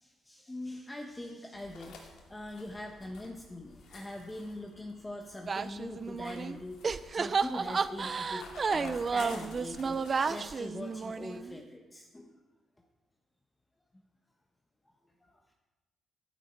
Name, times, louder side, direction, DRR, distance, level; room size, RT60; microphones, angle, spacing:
voice 1, 0.0-12.4 15.2-15.4, left 1 dB, 10° left, 1 dB, 1.1 m, -43 dB
sound 1, 1.5-10.4, left 4 dB, 90° left, 2.5 m, -51 dB
sound 2, 5.5-6.6 6.8-11.6, right 5 dB, 35° right, 0.5 m, -32 dB
12.5 x 10.5 x 4.5 m, 1.1 s
cardioid pair, 120°, 0 cm